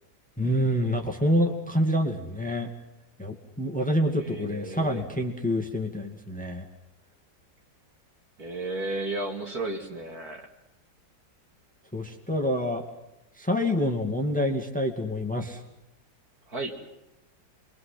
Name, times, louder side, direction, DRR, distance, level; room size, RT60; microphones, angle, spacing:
voice 1, 0.4-2.7 3.2-6.7 11.9-12.8 13.4-15.6, equal, 5° left, 2 dB, 2.1 m, -27 dB
voice 2, 4.1-5.0 8.4-10.5 16.5-16.8, right 2 dB, 55° right, 2 dB, 3.0 m, -33 dB
29.5 x 23.0 x 5.9 m, 0.91 s
omnidirectional pair, 2.0 m